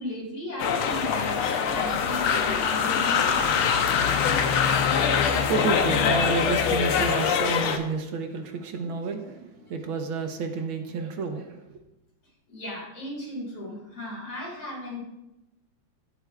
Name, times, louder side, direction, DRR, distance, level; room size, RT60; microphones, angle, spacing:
voice 1, 0.0-3.7 12.5-15.0, left 1 dB, 60° left, -4 dB, 3.9 m, -36 dB
sound 1, 0.6-7.8, left 7 dB, 85° left, 1.7 m, -23 dB
voice 2, 4.9-11.8, right 4 dB, 75° right, 5 dB, 1.7 m, -30 dB
16.5 x 7.6 x 2.4 m, 0.94 s
omnidirectional pair, 2.3 m